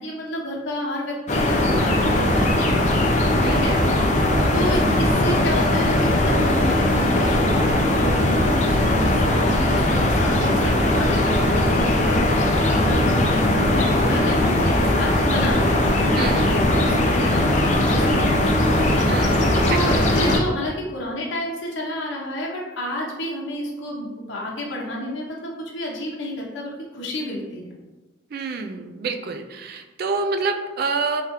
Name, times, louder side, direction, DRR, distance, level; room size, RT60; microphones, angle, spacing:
voice 1, 0.0-4.0 4.5-18.8 19.1-27.7, left 1 dB, 80° left, -3 dB, 0.7 m, -30 dB
sound 1, 1.3-20.4, left 1 dB, 40° left, 0.4 m, -19 dB
voice 2, 3.4-3.7 16.1-16.6 19.1-20.0 28.3-31.2, right 4 dB, 50° right, 6 dB, 0.3 m, -27 dB
3.5 x 3.3 x 2.9 m, 1.2 s
head